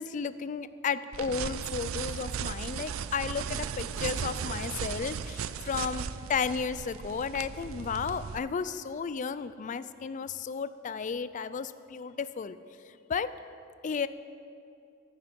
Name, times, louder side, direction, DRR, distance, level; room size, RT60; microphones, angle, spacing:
voice 1, 0.0-12.6 13.1-13.3 13.8-14.1, left 6 dB, 40° left, 14 dB, 0.3 m, -33 dB
sound 1, 1.1-8.4, right 7 dB, 80° right, 0.4 m, -36 dB
15.0 x 8.8 x 5.2 m, 2.5 s
head